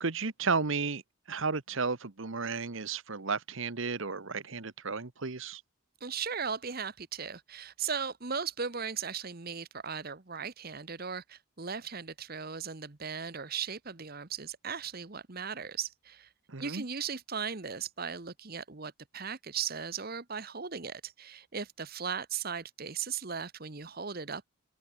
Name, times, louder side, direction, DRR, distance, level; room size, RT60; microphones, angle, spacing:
voice 1, 0.0-1.0 1.3-5.6 16.5-16.8, right 4 dB, 65° right, 1.1 m, -33 dB
voice 2, 6.0-16.3 16.6-24.5, right 6 dB, 45° right, 1.2 m, -37 dB
open air
head